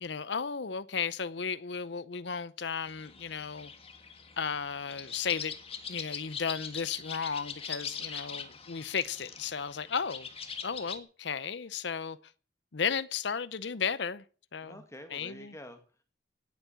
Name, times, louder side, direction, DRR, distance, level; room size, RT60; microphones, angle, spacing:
voice 1, 0.0-3.7 4.4-5.5 5.9-10.3 10.6-12.2 12.7-14.2 14.5-14.7 15.1-15.5, left 6 dB, 65° left, 0.7 m, -34 dB
sound 1, 2.9-11.0, left 6 dB, 30° left, 1.7 m, -42 dB
voice 2, 7.8-8.5 14.6-16.0, left 1 dB, 15° left, 1.8 m, -50 dB
18.5 x 8.4 x 7.1 m
head